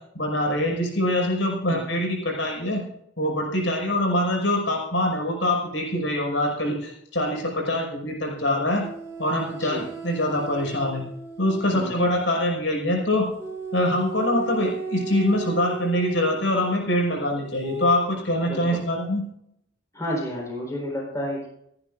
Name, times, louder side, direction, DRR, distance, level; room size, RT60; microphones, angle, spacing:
voice 1, 0.1-2.8 3.2-8.8 9.2-11.0 11.4-13.3 13.7-19.2, left 1 dB, 70° left, 0 dB, 5.7 m, -24 dB
sound 1, 8.8-12.3 13.4-16.5 17.6-18.0, right 4 dB, 15° right, 1.3 m, -35 dB
voice 2, 11.7-12.1 18.4-18.8 19.9-21.5, equal, 15° left, -2 dB, 4.3 m, -31 dB
28.5 x 11.0 x 2.6 m, 0.75 s
head